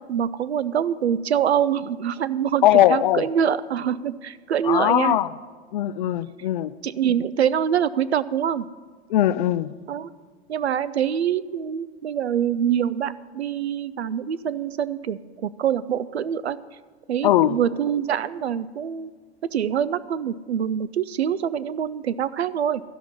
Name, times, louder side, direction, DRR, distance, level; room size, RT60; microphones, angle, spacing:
voice 1, 0.1-5.2 6.8-8.7 9.9-10.1 10.5-16.6 17.1-19.1 19.5-22.8, right 9 dB, 75° right, 15 dB, 0.6 m, -25 dB
voice 2, 2.6-3.2 4.6-5.3 5.7-6.7 9.1-9.7 17.2-17.6, left 13 dB, 50° left, 16 dB, 0.4 m, -19 dB
13.0 x 5.8 x 8.4 m, 1.5 s
figure-of-eight pair, 95°, 33 cm